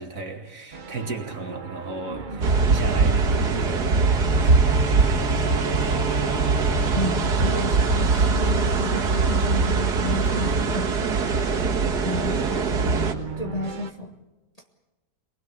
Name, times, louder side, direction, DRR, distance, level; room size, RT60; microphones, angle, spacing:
voice 1, 0.0-6.0 11.7-13.0, right 3 dB, 55° right, 2.5 m, -36 dB
sound 1, 0.7-13.9, right 5 dB, 35° right, 0.9 m, -37 dB
sound 2, 2.4-13.1, right 4 dB, 75° right, 2.2 m, -22 dB
Bowed string instrument, 4.0-8.6, right 3 dB, 70° left, 3.9 m, -34 dB
voice 2, 6.9-11.0 11.3-11.7 12.0-12.4 12.8-13.0 13.4-14.2, left 1 dB, 25° left, 1.7 m, -32 dB
23.0 x 20.5 x 8.2 m
omnidirectional pair, 1.7 m